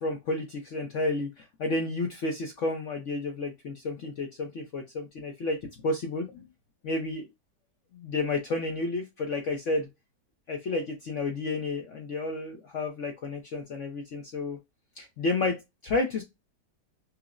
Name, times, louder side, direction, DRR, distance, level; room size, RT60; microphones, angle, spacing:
voice 1, 0.0-5.6 5.8-6.4 6.8-7.3 7.9-9.9 10.5-14.6 15.0-16.2, left 2 dB, 60° left, 3 dB, 0.8 m, -31 dB
5.8 x 2.0 x 2.4 m, 0.21 s
omnidirectional pair, 1.9 m